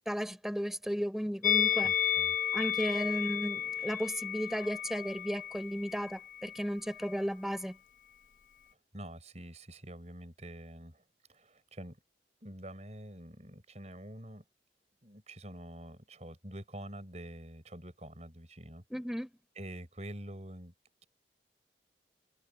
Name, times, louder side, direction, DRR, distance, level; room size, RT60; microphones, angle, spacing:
voice 1, 0.1-1.9 2.5-7.8 18.9-19.3, equal, ahead, 5.1 m, -34 dB
Musical instrument, 1.4-6.7 6.9-7.1, left 9 dB, 45° left, 0.7 m, -32 dB
voice 2, 1.8-2.4 8.9-11.0 11.3-12.0 12.4-14.4 15.0-18.8 19.6-20.7, right 1 dB, 35° right, 6.0 m, -46 dB
head